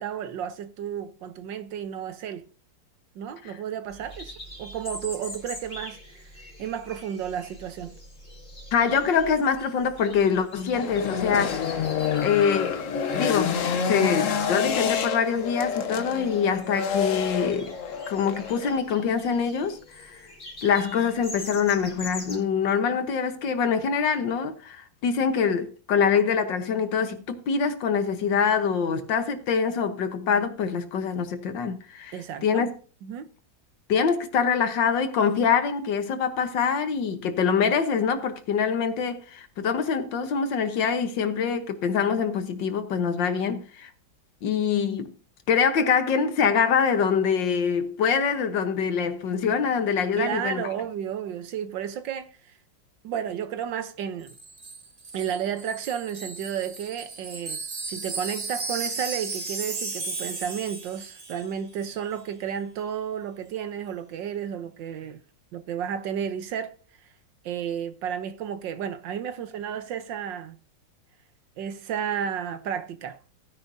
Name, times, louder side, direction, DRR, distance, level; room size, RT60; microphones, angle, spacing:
voice 1, 0.0-2.5 3.1-6.3 6.6-8.0 32.1-32.7 33.0-33.3 50.2-52.5 53.0-54.4 55.1-65.2 65.5-66.7 67.4-70.6 71.6-73.2, right 8 dB, 75° right, 1.6 m, -32 dB
sound 1, 3.9-22.4, left 1 dB, 35° left, 3.5 m, -44 dB
voice 2, 8.7-11.9 12.2-12.8 13.1-17.7 18.1-20.2 20.6-32.2 32.4-32.7 33.9-43.9 44.4-45.1 45.5-50.7, left 6 dB, 75° left, 1.8 m, -24 dB
sound 2, 10.7-18.8, left 7 dB, 55° left, 1.0 m, -28 dB
Wind chime, 54.3-61.5 61.8-62.0, right 3 dB, 25° right, 1.0 m, -35 dB
15.5 x 10.0 x 2.7 m
omnidirectional pair, 2.0 m